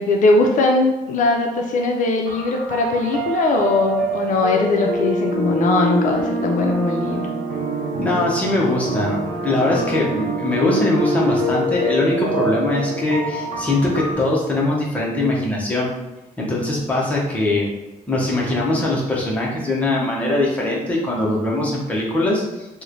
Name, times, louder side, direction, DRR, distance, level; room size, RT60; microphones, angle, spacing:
voice 1, 0.0-7.3, left 2 dB, 60° left, 2 dB, 0.4 m, -20 dB
sound 1, 2.3-14.1, right 1 dB, 60° right, 0.6 m, -25 dB
voice 2, 8.0-15.9 16.4-17.7 18.1-22.8, left 2 dB, 10° left, -4 dB, 0.7 m, -21 dB
3.0 x 2.1 x 3.7 m, 1.0 s
cardioid pair, 175°, 15 cm